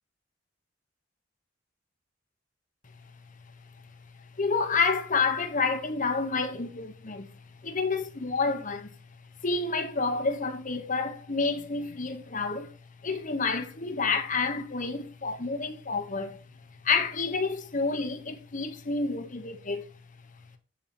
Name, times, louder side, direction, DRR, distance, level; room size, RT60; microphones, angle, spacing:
voice 1, 4.4-7.3 7.6-9.0 9.4-12.7 13.0-16.4 16.8-19.9, left 4 dB, 45° left, 1.2 m, -29 dB
8.8 x 7.4 x 4.4 m
head